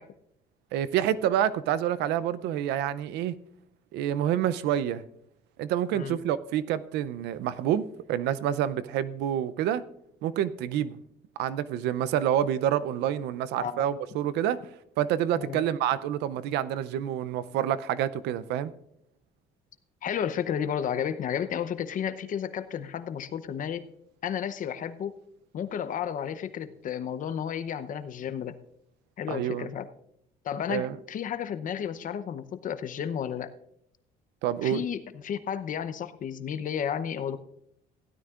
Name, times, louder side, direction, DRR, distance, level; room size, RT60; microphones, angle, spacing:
voice 1, 0.7-3.3 3.9-5.0 5.6-9.8 10.2-11.0 11.4-14.6 15.0-18.7 29.3-29.7 30.7-31.0 34.4-34.8, right 11 dB, 85° right, 0.6 m, -28 dB
voice 2, 20.0-23.9 24.2-25.1 25.5-28.6 29.2-29.9 30.4-33.5 34.6-37.4, left 8 dB, 50° left, 0.8 m, -32 dB
16.0 x 12.5 x 2.5 m
cardioid pair, 110°, 17 cm